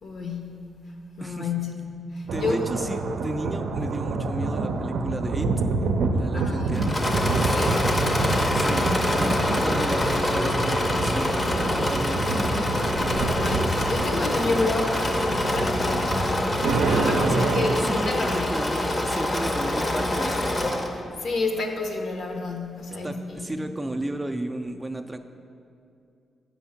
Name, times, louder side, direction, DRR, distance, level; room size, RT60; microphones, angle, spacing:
voice 1, 0.0-0.7 1.2-2.7 6.3-6.8 7.4-7.9 13.1-18.5 20.2-20.5 20.9-23.5, left 3 dB, 65° left, 3 dB, 0.9 m, -30 dB
voice 2, 2.3-5.5 6.1-6.9 8.5-12.7 17.2-17.5 17.8-20.7 23.0-25.2, right 1 dB, 15° right, 6 dB, 0.3 m, -33 dB
sound 1, 2.3-17.7, right 3 dB, 85° right, 0.4 m, -27 dB
Engine / Mechanisms, 6.7-21.0, left 1 dB, 25° left, 0.6 m, -25 dB
7.4 x 4.5 x 5.7 m, 2.5 s
cardioid pair, 115°, 0 cm